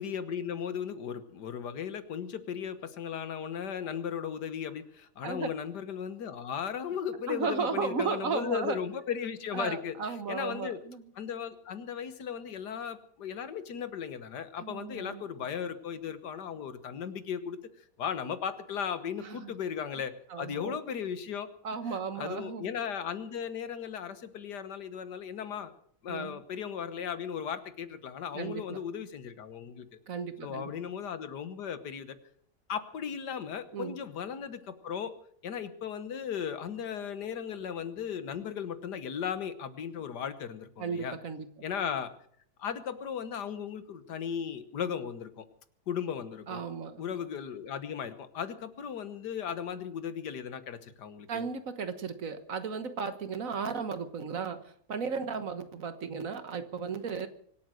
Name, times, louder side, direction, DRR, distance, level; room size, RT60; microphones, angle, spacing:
voice 1, 0.0-10.8 11.2-17.6 18.0-21.5 21.9-25.7 26.0-29.9 30.4-32.2 32.7-35.1 35.4-41.2 41.6-42.1 42.6-45.4 45.9-46.6 47.0-51.5, left 8 dB, 90° left, 12 dB, 1.8 m, -36 dB
voice 2, 7.3-8.8 9.5-11.0 14.6-15.2 19.2-19.5 20.3-20.8 21.6-22.7 26.1-26.4 28.3-28.8 30.1-30.7 33.7-34.0 40.8-41.5 46.5-47.0 51.3-57.3, right 5 dB, 55° right, 10 dB, 1.6 m, -35 dB
24.5 x 8.7 x 6.5 m, 0.62 s
omnidirectional pair, 1.7 m